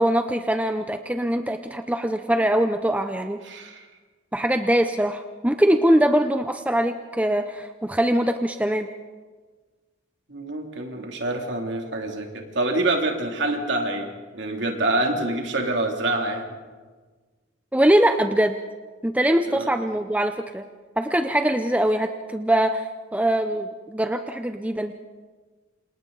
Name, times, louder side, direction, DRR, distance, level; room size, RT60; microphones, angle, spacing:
voice 1, 0.0-3.4 4.3-8.9 17.7-18.6 19.0-20.6 21.0-24.9, right 1 dB, 5° right, 7 dB, 0.6 m, -22 dB
voice 2, 3.4-3.9 10.3-16.5 19.5-19.7, right 2 dB, 60° right, 2 dB, 3.0 m, -26 dB
28.5 x 27.0 x 4.0 m, 1.4 s
head